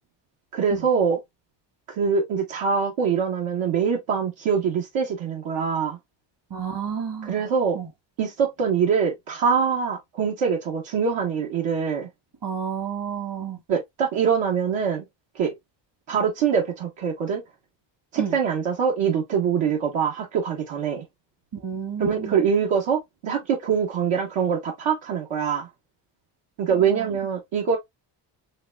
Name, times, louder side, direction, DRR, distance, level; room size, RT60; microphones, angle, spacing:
voice 1, 0.5-1.2 2.0-6.0 7.2-7.8 8.2-12.1 13.7-15.1 15.3-15.5 16.1-17.4 18.1-21.0 22.0-25.7 26.6-27.8, right 6 dB, 85° right, 1.3 m, -24 dB
voice 2, 6.5-7.3 7.8-7.9 12.4-13.6 18.2-18.4 21.6-22.3 26.9-27.0, right 7 dB, 60° right, 1.7 m, -30 dB
4.0 x 3.4 x 2.3 m
cardioid pair, 95°, 44 cm